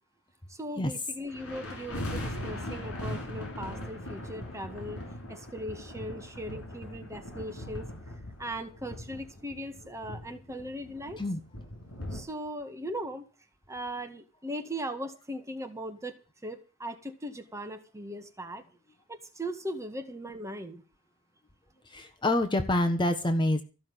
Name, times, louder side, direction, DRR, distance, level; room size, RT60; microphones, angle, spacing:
voice 1, 0.5-5.0 5.3-7.9 8.4-11.2 12.1-13.2 13.7-16.1 16.4-18.6 19.1-20.8, equal, 15° right, 6 dB, 1.9 m, -39 dB
sound 1, 1.3-12.2, left 1 dB, 65° left, 6.0 m, -40 dB
voice 2, 21.9-23.6, left 1 dB, 20° left, 7 dB, 1.3 m, -27 dB
15.0 x 6.4 x 9.1 m, 0.34 s
head